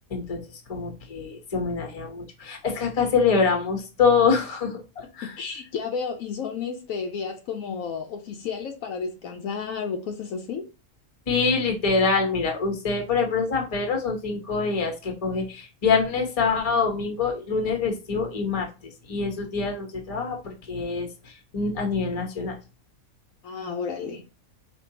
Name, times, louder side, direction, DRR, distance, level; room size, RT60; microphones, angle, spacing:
voice 1, 0.1-5.3 11.3-22.6, left 5 dB, 30° left, 0.8 m, -25 dB
voice 2, 5.2-10.7 23.4-24.2, left 6 dB, 75° left, 1.0 m, -32 dB
4.3 x 3.0 x 2.8 m
omnidirectional pair, 1.5 m